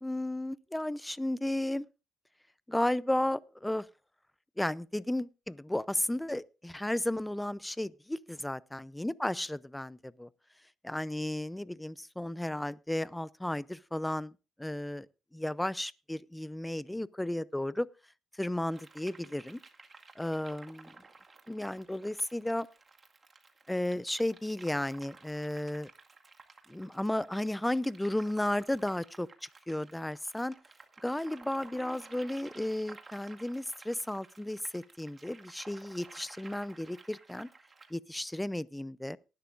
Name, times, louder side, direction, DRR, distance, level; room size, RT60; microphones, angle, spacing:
voice 1, 0.0-1.9 2.7-3.9 4.6-10.3 10.8-14.3 14.6-15.1 15.3-17.9 18.3-19.6 20.2-20.9 21.5-22.7 23.7-25.9 26.7-30.6 31.0-37.5 37.9-39.2, left 1 dB, 10° left, 0.6 m, -34 dB
sound 1, 18.7-37.9, right 4 dB, 30° right, 2.1 m, -54 dB
19.0 x 11.5 x 2.5 m
cardioid pair, 90°, 0 cm